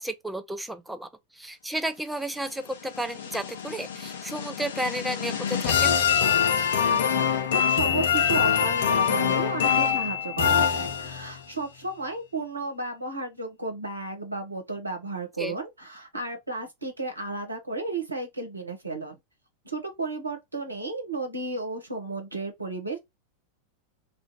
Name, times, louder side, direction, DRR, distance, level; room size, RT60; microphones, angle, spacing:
voice 1, 0.0-6.0 15.4-15.6, right 1 dB, 5° right, 0.4 m, -33 dB
sound 1, 2.5-11.4, left 8 dB, 60° left, 0.5 m, -25 dB
voice 2, 6.9-19.2 19.6-23.0, right 2 dB, 80° right, 0.8 m, -33 dB
2.4 x 2.2 x 2.9 m
figure-of-eight pair, 90°, 0 cm